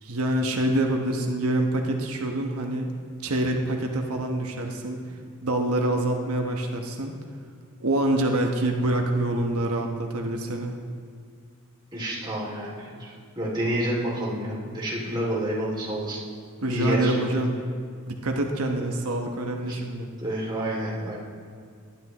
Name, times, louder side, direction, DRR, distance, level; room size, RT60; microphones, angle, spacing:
voice 1, 0.0-2.9 3.2-5.0 5.4-7.2 7.8-10.8 16.6-17.5 18.1-20.1, right 1 dB, 75° right, 2 dB, 1.0 m, -26 dB
voice 2, 11.9-16.2 16.7-17.1 19.7-19.8 20.2-21.2, right 1 dB, 20° right, -4 dB, 2.5 m, -29 dB
19.0 x 12.0 x 3.0 m, 2.2 s
head